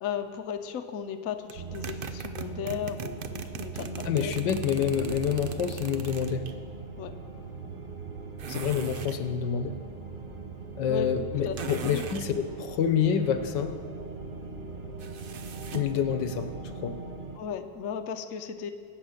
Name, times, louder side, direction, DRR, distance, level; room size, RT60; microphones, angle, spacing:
voice 1, 0.0-4.3 5.0-5.3 7.0-7.2 10.9-11.1 11.4-12.0 17.4-18.7, left 7 dB, 55° left, 6 dB, 1.1 m, -35 dB
sound 1, 1.5-17.4, right 5 dB, 35° right, 1.0 m, -40 dB
sound 2, 1.5-6.5 8.4-9.2 11.5-12.3 15.0-16.0, right 6 dB, 75° right, 0.5 m, -40 dB
voice 2, 4.0-6.5 8.5-9.7 10.8-13.8 15.7-16.5 16.8-17.0, left 8 dB, 80° left, 8 dB, 1.6 m, -27 dB
23.5 x 8.6 x 6.5 m, 2.2 s
omnidirectional pair, 1.9 m